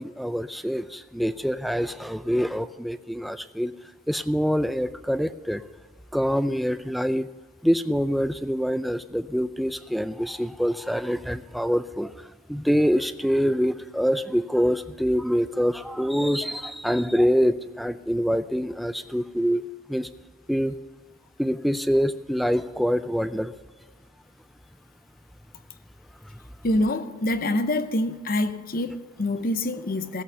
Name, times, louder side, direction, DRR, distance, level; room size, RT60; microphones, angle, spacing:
voice 1, 0.0-3.7 4.1-5.6 6.1-7.3 7.6-12.1 12.5-19.6 19.9-20.1 20.5-20.8 21.4-23.5, equal, ahead, 0.4 m, -25 dB
voice 2, 26.6-30.2, left 1 dB, 40° left, 0.7 m, -26 dB
15.5 x 8.5 x 6.8 m
head